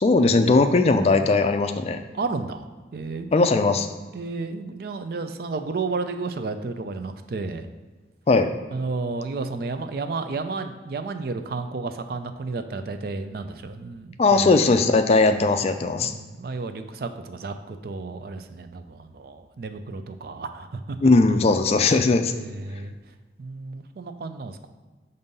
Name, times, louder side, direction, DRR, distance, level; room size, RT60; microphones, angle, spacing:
voice 1, 0.0-2.0 3.3-3.9 8.3-8.5 14.2-16.1 21.0-22.3, left 3 dB, 35° left, 8 dB, 0.3 m, -19 dB
voice 2, 2.1-2.6 2.9-3.3 4.1-7.7 8.7-14.6 16.0-21.1 22.3-22.9 23.4-24.7, right 3 dB, 55° right, 8 dB, 0.4 m, -32 dB
6.6 x 2.6 x 5.3 m, 1.3 s
head